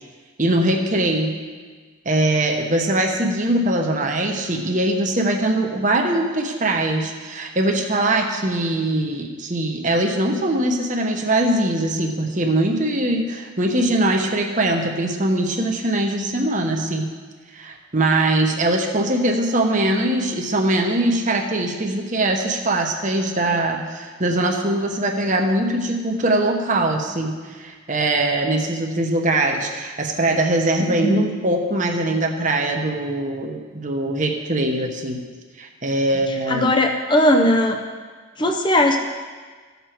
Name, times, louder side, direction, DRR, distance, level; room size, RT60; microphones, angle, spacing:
voice 1, 0.4-1.3 2.0-17.1 17.5-35.2 35.6-36.7, right 1 dB, 40° right, 2 dB, 1.1 m, -21 dB
voice 2, 31.0-31.3 36.5-37.8 38.4-39.0, left 1 dB, 25° left, 3 dB, 0.7 m, -18 dB
15.5 x 6.8 x 4.6 m, 1.5 s
head